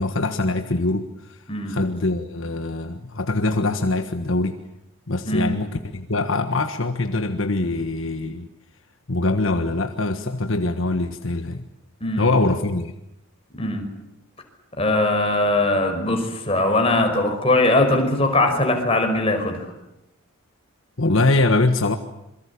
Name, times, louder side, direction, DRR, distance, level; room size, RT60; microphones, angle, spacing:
voice 1, 0.0-1.4 1.7-4.5 5.1-8.5 9.1-11.7 12.2-12.9 21.0-22.0, left 2 dB, 65° left, 7 dB, 1.5 m, -23 dB
voice 2, 12.0-12.3 13.6-13.8 14.8-19.7, left 2 dB, 25° left, 3 dB, 5.4 m, -20 dB
27.0 x 23.0 x 8.6 m, 0.86 s
head